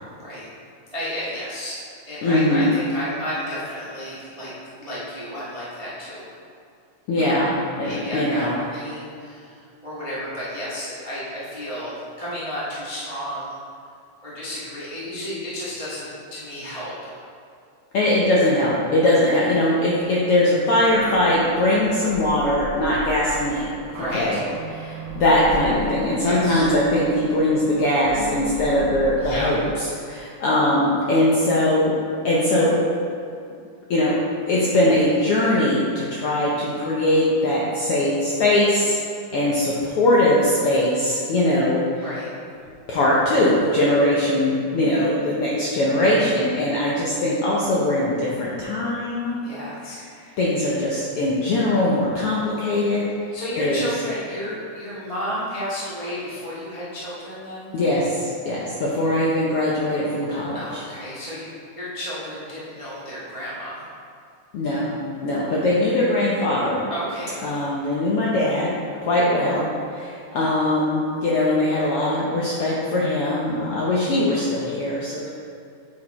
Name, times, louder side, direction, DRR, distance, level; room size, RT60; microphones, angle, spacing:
voice 1, 0.9-4.5 4.8-6.3 7.2-7.4 7.8-9.5 9.8-13.6 14.2-17.1 23.9-24.4 26.2-26.6 29.2-29.5 42.0-42.3 49.4-50.0 53.3-57.7 60.5-61.5 61.8-63.8 66.9-67.4, equal, 35° right, -9 dB, 0.5 m, -32 dB
voice 2, 2.2-2.7 7.1-7.5 7.8-8.6 17.9-23.7 24.1-24.4 24.7-31.9 32.2-32.8 33.9-34.1 34.5-39.0 39.3-42.1 42.9-49.4 50.4-53.0 53.6-53.8 57.7-60.8 64.5-64.9 65.2-66.8 67.4-68.7 69.0-75.3, left 1 dB, 75° left, -6 dB, 1.3 m, -21 dB
sound 1, 20.9-29.6, right 2 dB, 75° right, 1.4 m, -36 dB
8.4 x 4.9 x 4.2 m, 2.4 s
omnidirectional pair, 3.6 m